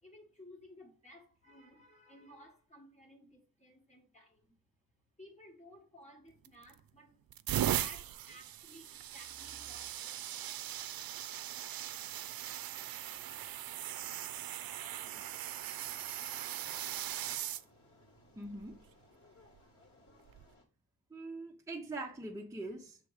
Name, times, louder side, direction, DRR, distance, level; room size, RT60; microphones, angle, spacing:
voice 1, 0.0-4.6 5.2-7.2 7.6-9.8, equal, 20° left, 1.5 m, -56 dB
sound 1, 6.5-6.8 7.3-17.6 18.5-18.8 20.3-20.4, right 11 dB, 80° right, 0.5 m, -39 dB
sound 2, 13.1-20.6, left 2 dB, 40° left, 2.3 m, -63 dB
voice 2, 18.4-18.8 21.1-23.0, right 2 dB, 10° right, 0.7 m, -43 dB
6.7 x 3.4 x 4.8 m
wide cardioid pair, 155°, 35 cm